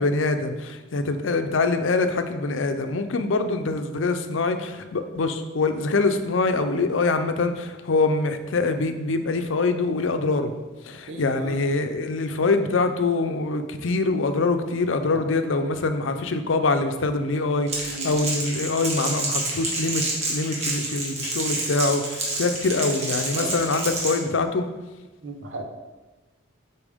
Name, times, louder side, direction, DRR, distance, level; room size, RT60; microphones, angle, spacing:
voice 1, 0.0-10.5 10.9-20.0 20.3-24.7, left 3 dB, 80° left, 8 dB, 0.6 m, -24 dB
voice 2, 11.1-11.6 17.9-18.2 23.3-23.7 25.2-25.6, right 2 dB, 70° right, 2 dB, 1.0 m, -35 dB
Crackle, 17.7-24.2, right 2 dB, 35° right, 1.5 m, -28 dB
8.5 x 4.4 x 3.5 m, 1.2 s
head